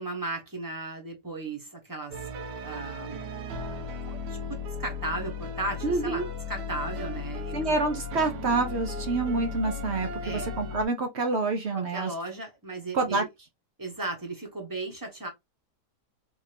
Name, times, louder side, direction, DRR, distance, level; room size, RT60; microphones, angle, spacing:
voice 1, 0.0-2.2 2.6-3.3 3.6-4.2 4.5-7.8 10.2-10.5 11.7-13.3 13.8-15.3, right 2 dB, 15° right, 1.0 m, -36 dB
sound 1, 2.1-10.9, left 3 dB, 90° right, 1.4 m, -36 dB
voice 2, 5.8-6.3 7.5-12.1 12.9-13.3, right 3 dB, 55° right, 0.7 m, -27 dB
3.6 x 2.6 x 3.2 m
omnidirectional pair, 1.8 m